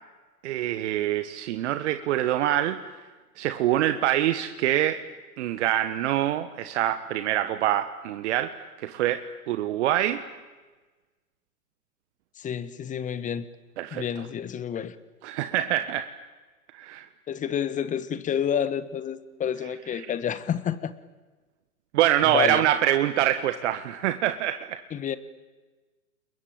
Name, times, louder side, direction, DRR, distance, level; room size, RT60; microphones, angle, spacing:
voice 1, 0.4-2.8 3.4-5.0 5.4-10.2 13.8-14.2 15.2-16.1 16.7-17.1 21.9-24.8, right 12 dB, 50° right, 1.4 m, -25 dB
voice 2, 12.4-13.4 13.9-14.9 17.3-20.9 22.2-22.6 24.9-25.2, left 8 dB, 15° left, 1.3 m, -29 dB
29.5 x 22.0 x 8.9 m
hypercardioid pair, 115°, 46 cm